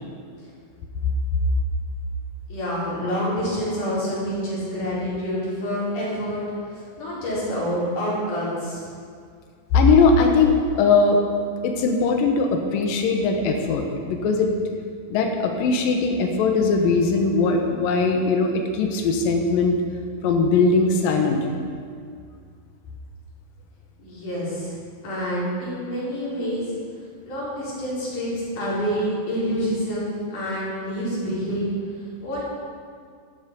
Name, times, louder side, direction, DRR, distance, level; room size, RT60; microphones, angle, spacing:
voice 1, 2.5-6.4 6.7-8.9 24.0-24.7 25.0-26.6 27.2-31.7 32.2-32.4, equal, 65° left, -8 dB, 5.8 m, -27 dB
voice 2, 9.7-11.2 11.6-14.5 15.1-19.8 20.2-21.6, left 4 dB, 85° left, 3 dB, 2.9 m, -20 dB
12.5 x 12.5 x 5.3 m, 2.2 s
omnidirectional pair, 3.9 m